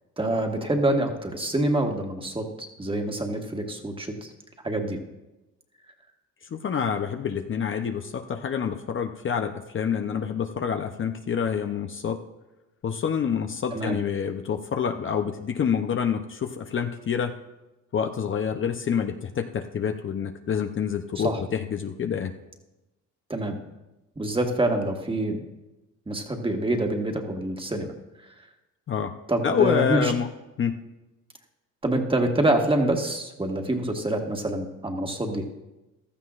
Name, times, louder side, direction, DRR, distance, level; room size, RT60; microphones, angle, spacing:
voice 1, 0.2-2.5 2.8-4.1 4.6-5.0 13.7-14.0 21.2-21.4 23.3-23.6 24.2-25.4 26.1-27.9 29.3-30.1 31.8-35.4, right 1 dB, 15° right, 3 dB, 1.6 m, -26 dB
voice 2, 6.5-12.2 12.8-17.3 17.9-22.3 28.9-29.1 29.4-30.3 30.6-30.8, left 7 dB, 40° left, 6 dB, 0.7 m, -27 dB
15.5 x 13.0 x 2.5 m, 1.0 s
cardioid pair, 90°, 30 cm